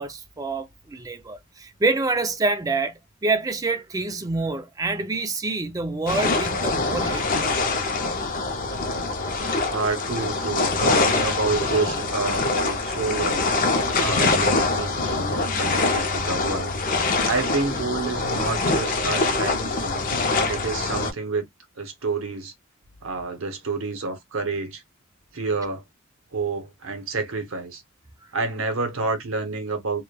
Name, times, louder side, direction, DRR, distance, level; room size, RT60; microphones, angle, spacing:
voice 1, 0.0-7.6, right 3 dB, 15° right, 0.3 m, -27 dB
sound 1, 6.1-21.1, left 3 dB, 40° left, 0.5 m, -24 dB
voice 2, 9.7-13.5 14.0-16.7 17.3-20.0 20.4-21.5 21.8-22.5 23.0-24.8 25.3-25.8 26.3-27.8 28.3-30.0, right 3 dB, 70° right, 0.8 m, -28 dB
3.0 x 2.1 x 2.2 m
head